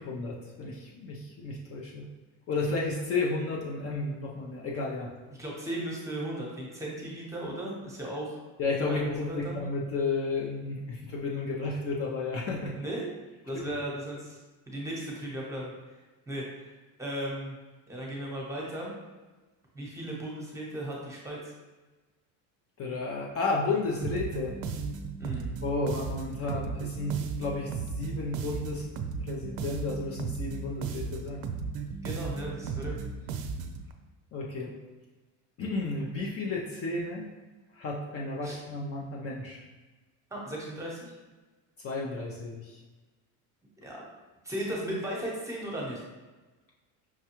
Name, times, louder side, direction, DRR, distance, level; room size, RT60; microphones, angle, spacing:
voice 1, 0.1-2.1 2.5-5.1 8.6-12.7 13.6-13.8 22.8-24.5 25.6-28.9 29.2-31.5 34.3-34.7 35.6-37.3 37.7-39.6 41.8-42.8, left 3 dB, 40° left, -2 dB, 0.6 m, -32 dB
voice 2, 5.4-8.4 8.9-9.6 12.7-13.1 13.5-14.4 14.7-16.0 16.3-16.7 17.0-17.6 17.9-18.9 19.7-21.4 25.2-25.5 31.9-32.9 38.4-38.6 40.3-41.1 43.8-44.0 44.4-46.0, right 1 dB, 10° right, -3 dB, 1.0 m, -36 dB
sound 1, 24.0-33.9, right 5 dB, 55° right, 0.5 m, -35 dB
5.8 x 2.2 x 2.9 m, 1.2 s
cardioid pair, 125°, 38 cm